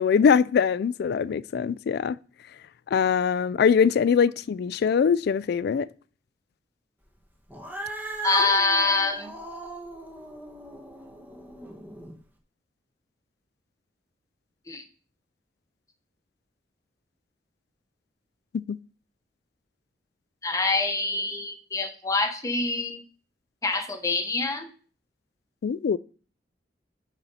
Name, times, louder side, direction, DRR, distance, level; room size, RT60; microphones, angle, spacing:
voice 1, 0.0-2.2 2.9-5.9 18.7-18.8 25.6-26.0, left 6 dB, 60° left, 0.3 m, -22 dB
Cat, 7.5-12.1, right 1 dB, 10° right, 1.2 m, -38 dB
voice 2, 8.2-9.3 14.7-14.8 20.4-23.0 23.6-24.7, left 3 dB, 20° left, 1.0 m, -25 dB
9.1 x 4.2 x 5.5 m
head